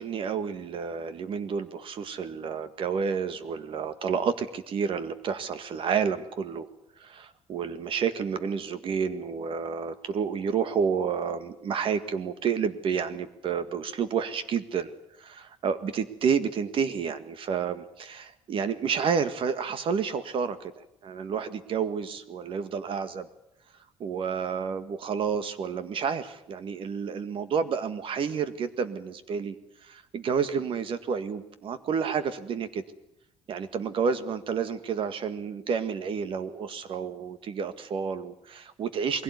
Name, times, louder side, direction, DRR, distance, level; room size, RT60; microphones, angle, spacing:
voice 1, 0.0-6.7 7.0-14.9 15.2-20.7 21.0-23.3 24.0-29.6 29.9-32.8 33.5-39.2, right 6 dB, 55° right, 12 dB, 1.8 m, -30 dB
22.0 x 16.5 x 9.7 m, 0.82 s
cardioid pair, 120°, 11 cm